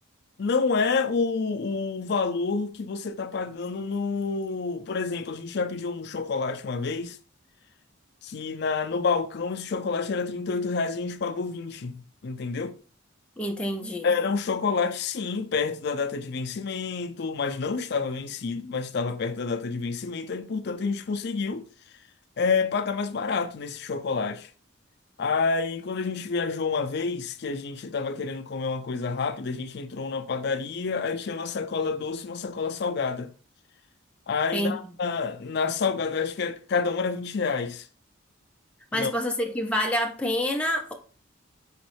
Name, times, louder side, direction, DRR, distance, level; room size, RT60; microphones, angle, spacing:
voice 1, 0.4-7.2 8.2-12.8 14.0-21.7 22.4-24.5 25.2-33.3 34.3-37.9 38.9-39.1, left 4 dB, 55° left, 0.4 m, -28 dB
voice 2, 13.4-14.1 34.5-34.8 38.9-40.9, left 1 dB, 5° left, 0.6 m, -27 dB
5.0 x 3.0 x 3.1 m
head